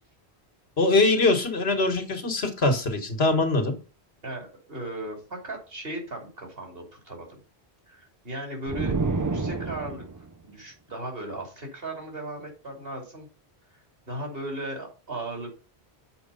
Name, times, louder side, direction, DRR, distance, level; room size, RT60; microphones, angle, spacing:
voice 1, 0.8-3.7, left 2 dB, 70° left, 5 dB, 1.7 m, -22 dB
voice 2, 4.2-7.4 7.9-13.3 13.7-15.5, right 1 dB, 60° right, 2 dB, 2.8 m, -37 dB
sound 1, 8.7-10.3, right 3 dB, 30° right, 0.3 m, -28 dB
7.1 x 4.8 x 5.3 m, 0.34 s
omnidirectional pair, 1.1 m